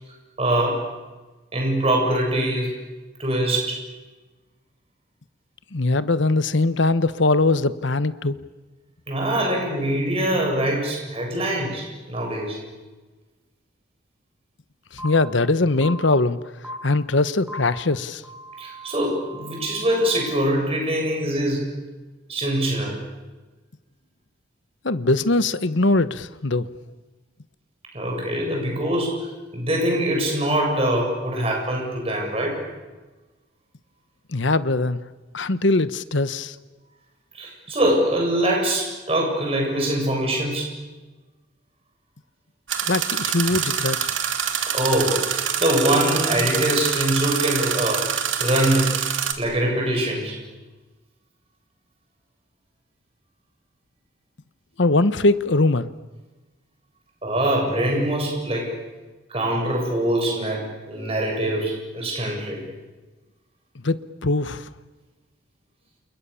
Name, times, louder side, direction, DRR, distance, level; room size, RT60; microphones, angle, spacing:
voice 1, 0.4-0.8 1.5-2.8 3.2-3.8 9.1-12.6 18.6-21.7 22.3-23.0 27.9-29.3 29.5-32.6 37.3-40.7 44.7-48.0 48.4-49.0 49.4-50.4 57.2-58.7 59.3-62.6, right 1 dB, 30° right, 0 dB, 7.8 m, -23 dB
voice 2, 5.7-8.4 14.9-16.4 16.8-18.2 24.8-26.7 34.3-35.0 35.3-36.6 42.9-44.1 54.8-55.9 63.8-64.7, left 2 dB, 70° left, 14 dB, 1.1 m, -21 dB
sound 1, 15.0-15.1 15.8-15.9 16.6-16.7 17.5-17.6 18.2-20.3, right 2 dB, 5° right, 5.8 m, -39 dB
sound 2, 42.7-49.3, right 8 dB, 75° right, 2.8 m, -25 dB
29.5 x 28.5 x 7.1 m, 1.2 s
head